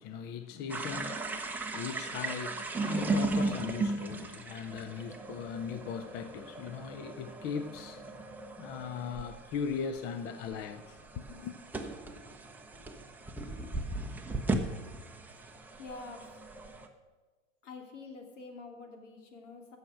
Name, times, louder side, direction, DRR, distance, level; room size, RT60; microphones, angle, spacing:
voice 1, 0.0-8.3 8.6-11.5, left 6 dB, 25° left, 0.5 m, -39 dB
sound 1, 0.7-16.9, right 2 dB, 5° right, 0.8 m, -37 dB
voice 2, 15.8-16.4 17.6-19.8, left 3 dB, 70° left, 2.7 m, -46 dB
15.0 x 6.4 x 6.4 m
hypercardioid pair, 130°, 38 cm